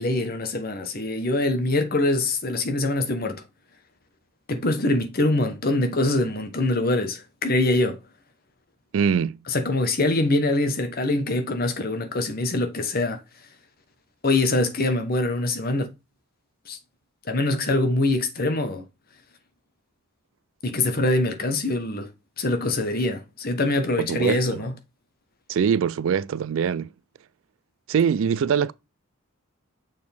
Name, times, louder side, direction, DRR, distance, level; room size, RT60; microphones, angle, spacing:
voice 1, 0.0-3.4 4.5-8.0 9.5-13.2 14.2-15.9 16.7-16.8 17.3-18.8 20.6-22.1 22.4-24.7, left 2 dB, 40° left, 1.0 m, -24 dB
voice 2, 8.9-9.4 24.0-24.7 25.5-26.9 27.9-28.7, right 7 dB, 60° right, 0.3 m, -23 dB
6.6 x 4.2 x 3.4 m
head